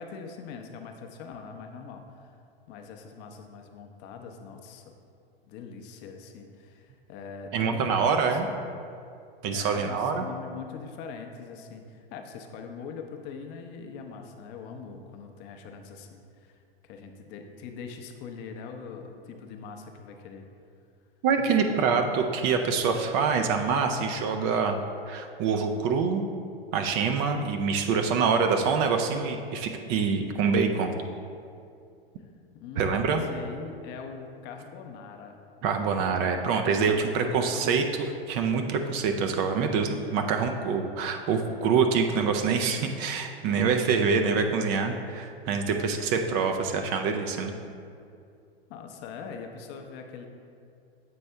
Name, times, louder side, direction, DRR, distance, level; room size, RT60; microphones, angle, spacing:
voice 1, 0.0-2.4 2.7-4.9 5.5-8.4 9.5-20.4 21.4-21.7 32.6-35.4 36.7-37.9 48.7-50.3, left 5 dB, 35° left, 4 dB, 0.6 m, -42 dB
voice 2, 7.5-8.5 9.4-10.2 21.2-24.8 25.1-26.2 26.7-30.9 32.8-33.2 35.6-47.5, right 5 dB, 35° right, 5 dB, 0.5 m, -25 dB
7.7 x 4.2 x 3.3 m, 2.4 s
hypercardioid pair, 100°, 31 cm